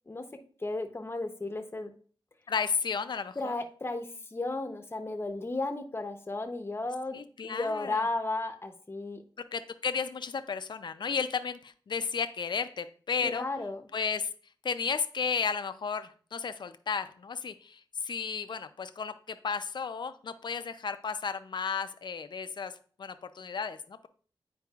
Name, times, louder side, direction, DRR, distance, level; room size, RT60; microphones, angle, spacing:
voice 1, 0.6-1.9 3.4-9.2 13.2-13.9, left 2 dB, 25° left, 6 dB, 0.8 m, -34 dB
voice 2, 2.5-3.6 7.1-8.1 9.4-13.4 13.9-14.3 14.6-22.7 23.0-24.1, left 5 dB, 60° left, 10 dB, 0.5 m, -33 dB
9.0 x 4.7 x 2.4 m, 0.43 s
wide cardioid pair, 90°, 9 cm